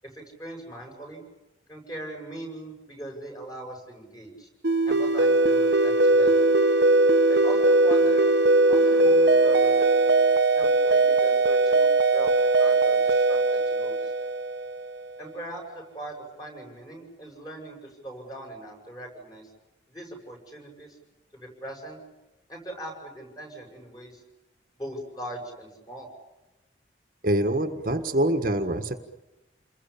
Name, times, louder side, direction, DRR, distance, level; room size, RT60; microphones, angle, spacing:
voice 1, 0.0-1.2 1.7-4.5 4.9-6.5 7.3-8.3 8.7-9.9 10.5-11.9 12.1-14.3 15.2-19.5 19.9-21.0 21.3-22.0 22.5-24.2 24.8-26.1, right 1 dB, 20° left, 2 dB, 7.9 m, -40 dB
sound 1, 4.6-15.0, right 2 dB, 65° right, 1.2 m, -20 dB
voice 2, 27.2-29.0, right 1 dB, 45° right, 7 dB, 1.6 m, -25 dB
29.5 x 22.0 x 8.7 m, 1.0 s
head